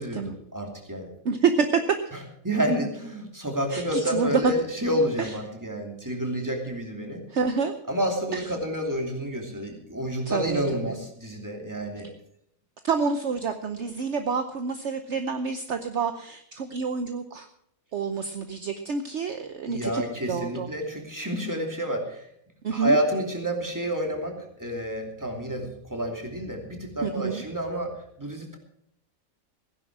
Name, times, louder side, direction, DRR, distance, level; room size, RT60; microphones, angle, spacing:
voice 1, 0.0-1.1 2.1-7.2 7.9-12.1 19.7-22.3 22.7-28.6, equal, 15° right, 2 dB, 2.7 m, -29 dB
voice 2, 1.2-1.8 3.7-4.5 5.2-5.3 7.3-7.7 8.3-8.5 10.3-11.0 12.8-17.5 17.9-20.0 20.3-20.7 22.6-23.0 27.0-27.4, right 5 dB, 55° right, 8 dB, 1.1 m, -27 dB
16.0 x 10.5 x 6.1 m, 0.70 s
omnidirectional pair, 1.5 m